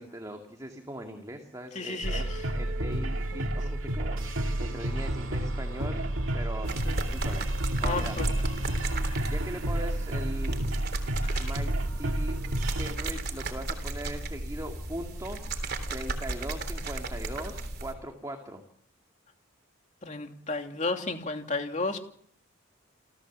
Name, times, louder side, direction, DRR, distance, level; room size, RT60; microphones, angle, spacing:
voice 1, 0.0-2.3 2.5-8.2 9.3-10.6 11.4-11.7 12.0-12.4 12.8-15.4 15.9-18.6, right 1 dB, 15° right, 3 dB, 2.2 m, -40 dB
voice 2, 1.7-2.2 3.3-3.5 7.8-8.3 8.6-9.2 11.2-11.5 20.0-22.0, left 3 dB, 35° left, 4 dB, 2.8 m, -33 dB
sound 1, 2.0-13.0, right 1 dB, 80° right, 2.2 m, -30 dB
sound 2, 6.6-17.9, right 2 dB, 50° right, 3.5 m, -35 dB
29.5 x 15.0 x 7.4 m, 0.66 s
head